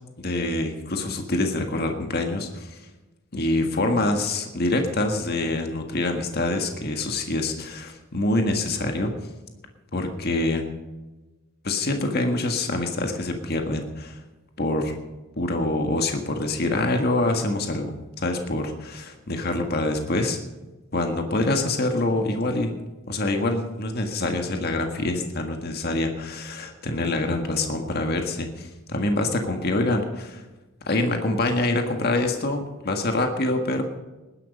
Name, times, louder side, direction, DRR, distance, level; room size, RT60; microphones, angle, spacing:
voice 1, 0.2-2.8 3.3-9.1 9.9-10.6 11.6-14.2 14.6-14.9 15.4-20.4 20.9-22.8 23.1-30.4 30.9-33.8, left 2 dB, 50° left, 4 dB, 1.7 m, -25 dB
19.5 x 11.0 x 5.4 m, 1.1 s
head